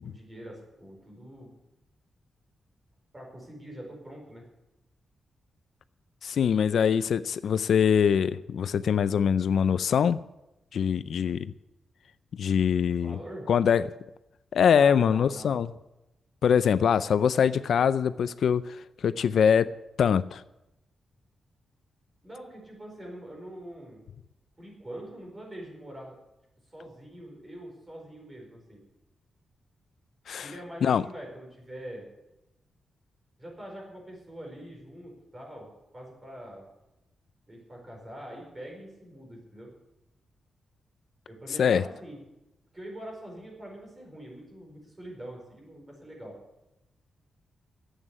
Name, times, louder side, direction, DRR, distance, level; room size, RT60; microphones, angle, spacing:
voice 1, 0.0-1.5 3.1-4.4 12.5-12.6 13.0-13.5 14.7-15.5 22.2-24.0 24.6-26.2 26.7-28.8 30.4-32.1 33.4-36.6 37.5-39.7 41.3-42.2 42.7-46.4, right 1 dB, 20° right, 0 dB, 4.7 m, -44 dB
voice 2, 6.2-10.2 10.7-11.5 12.4-13.2 13.5-13.9 14.5-15.7 16.4-19.7 20.0-20.4 30.3-30.5 30.8-31.0 41.6-41.8, left 7 dB, 65° left, 14 dB, 0.4 m, -23 dB
11.0 x 8.1 x 9.7 m, 0.92 s
wide cardioid pair, 160°, 0 cm